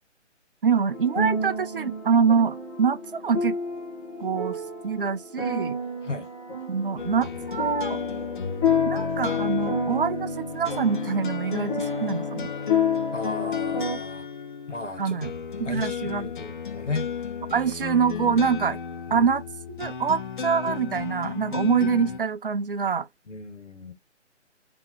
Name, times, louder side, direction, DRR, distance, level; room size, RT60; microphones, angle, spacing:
voice 1, 0.6-3.6 4.2-5.8 6.7-8.0 8.9-12.5 15.0-15.3 15.6-16.3 17.5-18.8 19.1-19.4 19.7-23.1, right 6 dB, 50° right, 0.5 m, -25 dB
sound 1, 0.9-14.0, left 3 dB, 15° left, 1.5 m, -29 dB
sound 2, 7.0-22.2, left 6 dB, 45° left, 0.5 m, -34 dB
voice 2, 13.1-14.3 14.7-15.2 15.6-17.1 19.1-19.3 23.3-23.9, left 3 dB, 85° left, 1.5 m, -34 dB
3.5 x 2.9 x 3.0 m
figure-of-eight pair, 140°, 36 cm